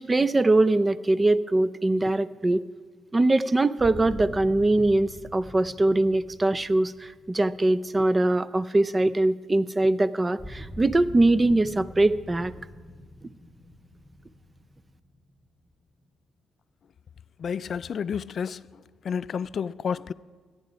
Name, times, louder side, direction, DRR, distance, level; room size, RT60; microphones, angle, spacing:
voice 1, 0.0-2.6 3.1-12.5, right 2 dB, 20° right, 0.4 m, -22 dB
sound 1, 3.8-8.7 10.4-16.0, equal, ahead, 2.1 m, -44 dB
voice 2, 17.4-20.1, left 7 dB, 55° left, 0.3 m, -31 dB
14.5 x 10.5 x 5.0 m
cardioid pair, 90°, 0 cm